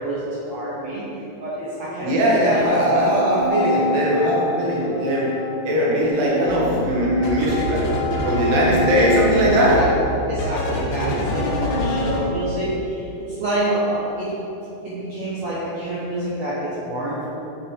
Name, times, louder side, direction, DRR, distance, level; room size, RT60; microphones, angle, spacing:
voice 1, 0.0-2.9 9.7-9.9 10.3-14.3 14.8-17.2, right 1 dB, 80° right, -9 dB, 1.5 m, -27 dB
voice 2, 2.0-5.3 5.6-7.8 8.2-9.8, equal, 60° right, -5 dB, 2.9 m, -20 dB
sound 1, 2.4-12.3, left 1 dB, 90° left, 2.8 m, -28 dB
sound 2, 6.5-6.8 7.2-12.2, equal, 65° left, 1.9 m, -25 dB
7.7 x 7.2 x 3.8 m, 3.0 s
omnidirectional pair, 4.8 m